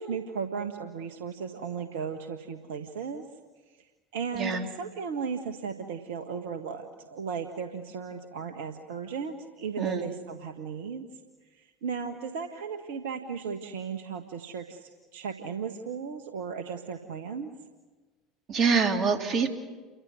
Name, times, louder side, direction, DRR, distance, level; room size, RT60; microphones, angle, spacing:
voice 1, 0.0-3.3 3.8-3.9 4.1-11.1 11.5-17.5, right 6 dB, 70° right, 6 dB, 1.5 m, -36 dB
voice 2, 4.3-4.6 9.8-10.1 18.5-19.5, right 5 dB, 40° right, 4 dB, 3.5 m, -25 dB
30.0 x 24.0 x 6.6 m, 1.3 s
figure-of-eight pair, 70°, 0 cm